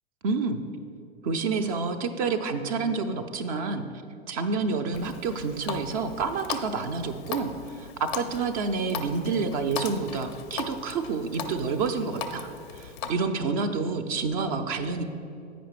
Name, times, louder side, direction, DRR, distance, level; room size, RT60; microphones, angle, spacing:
voice 1, 0.2-0.6 1.2-3.9 4.3-15.0, right 4 dB, 30° right, 8 dB, 0.4 m, -29 dB
Water tap faucet, 4.9-13.1, left 5 dB, 25° left, 0.4 m, -38 dB
8.8 x 5.1 x 4.7 m, 2.7 s
figure-of-eight pair, 100°, 33 cm